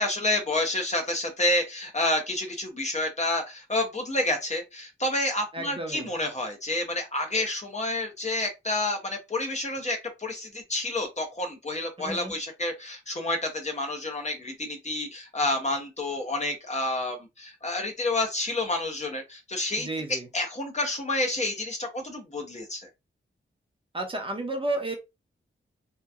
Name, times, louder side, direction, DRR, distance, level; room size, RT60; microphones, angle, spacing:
voice 1, 0.0-22.9, left 2 dB, 35° left, 0.7 m, -29 dB
voice 2, 5.5-6.1 12.0-12.4 19.8-20.3 23.9-24.9, right 2 dB, 25° right, 0.8 m, -32 dB
2.8 x 2.2 x 2.3 m
wide cardioid pair, 95°, 21 cm